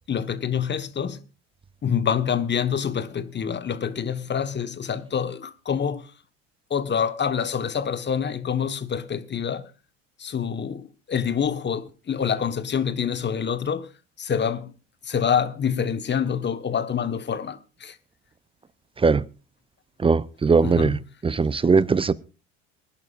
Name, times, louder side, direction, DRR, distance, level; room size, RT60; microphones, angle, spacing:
voice 1, 0.1-1.2 1.8-6.1 6.7-9.7 10.2-13.9 14.2-14.7 15.0-17.9 20.6-21.0, left 7 dB, 30° left, 1.2 m, -26 dB
voice 2, 20.0-22.1, right 4 dB, 15° right, 0.5 m, -20 dB
25.0 x 11.0 x 2.4 m
hypercardioid pair, 70°, 38 cm